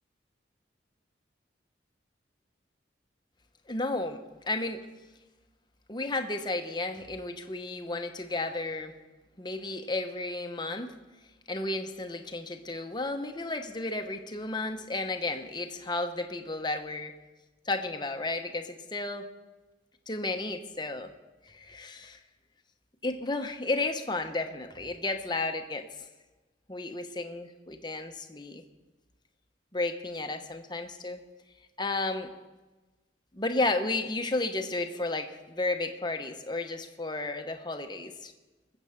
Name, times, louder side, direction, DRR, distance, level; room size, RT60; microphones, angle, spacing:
voice 1, 3.7-4.9 5.9-8.9 9.4-11.0 11.5-17.1 17.7-19.3 20.1-21.1 21.5-22.2 23.0-25.9 26.7-28.6 29.7-31.2 31.8-32.3 33.3-38.3, left 2 dB, 25° left, 6 dB, 0.9 m, -33 dB
20.5 x 7.9 x 5.8 m, 1.2 s
head